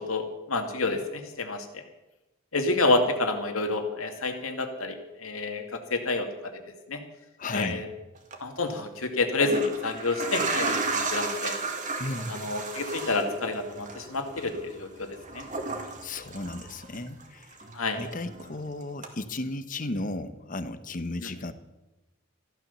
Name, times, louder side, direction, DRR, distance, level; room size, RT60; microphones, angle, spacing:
voice 1, 0.0-1.8 2.5-6.3 6.9-7.0 7.5-7.9 8.4-11.6 12.3-15.4 17.7-18.0 21.2-21.3, left 3 dB, 90° left, 5 dB, 2.2 m, -29 dB
voice 2, 7.4-7.9 12.0-12.4 16.0-17.6 18.0-21.5, left 2 dB, 40° left, 11 dB, 1.0 m, -34 dB
sound 1, 8.2-8.4 9.2-17.2 17.5-18.6 19.0-19.1, right 3 dB, 40° right, 2.1 m, -33 dB
14.5 x 12.0 x 6.9 m, 1.0 s
head